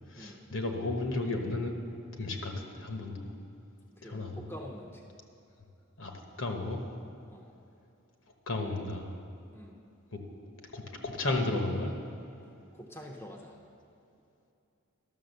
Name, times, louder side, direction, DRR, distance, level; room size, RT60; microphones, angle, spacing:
voice 1, 0.1-1.7 2.1-3.3 4.0-4.4 6.0-6.1 6.4-6.8 8.5-9.1 10.1-10.2 10.7-11.9, left 2 dB, 60° left, 3 dB, 1.1 m, -33 dB
voice 2, 4.0-5.2 7.3-7.5 9.5-9.8 12.7-13.7, equal, 10° left, 0 dB, 0.7 m, -46 dB
11.5 x 6.7 x 6.7 m, 2.7 s
head